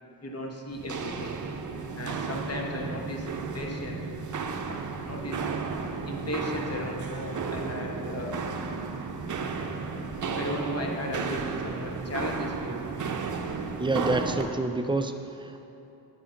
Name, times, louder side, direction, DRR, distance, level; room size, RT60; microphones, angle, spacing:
voice 1, 0.2-1.4 2.0-4.1 4.6-5.4 6.1-8.4 10.3-13.0, left 1 dB, 40° left, 0 dB, 1.2 m, -35 dB
Walk footsteps, 0.7-14.5, right 5 dB, 50° right, 0.7 m, -33 dB
voice 2, 13.8-15.6, right 2 dB, 15° right, 6 dB, 0.4 m, -28 dB
9.8 x 4.9 x 6.4 m, 2.8 s
wide cardioid pair, 130°, 39 cm